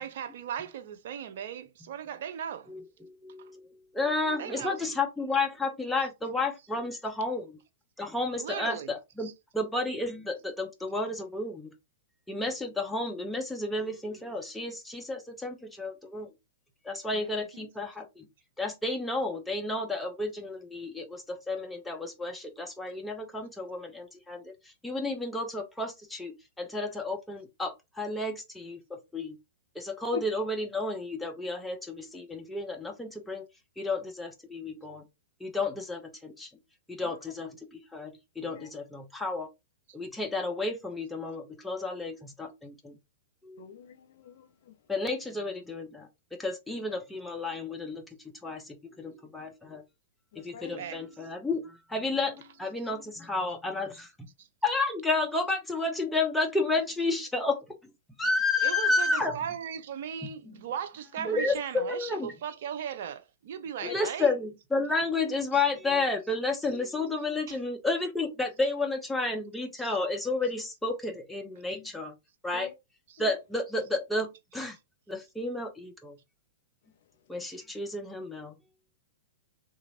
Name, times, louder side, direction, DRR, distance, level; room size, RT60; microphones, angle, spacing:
voice 1, 0.0-2.7 4.4-4.8 8.4-8.9 9.2-9.3 17.1-17.7 50.8-51.0 54.4-54.5 58.6-64.3 67.5-67.6 69.8-69.9 73.1-73.2, right 8 dB, 65° right, 0.5 m, -38 dB
voice 2, 2.7-3.7 3.9-7.6 8.0-11.8 12.3-16.3 16.8-18.3 18.6-29.4 29.7-33.4 33.8-35.0 35.4-36.5 36.9-39.5 39.9-43.0 43.4-43.7 44.9-49.8 50.4-54.3 54.6-57.6 58.2-59.4 60.2-60.6 61.2-62.3 63.8-72.1 72.4-72.7 73.2-74.8 75.1-76.2 77.3-78.6, left 3 dB, 5° left, 0.8 m, -32 dB
voice 3, 43.6-44.7 50.3-50.7 63.8-63.9 72.5-72.7 73.2-73.3, left 7 dB, 65° left, 0.5 m, -42 dB
2.9 x 2.5 x 2.7 m
hypercardioid pair, 110°, 0 cm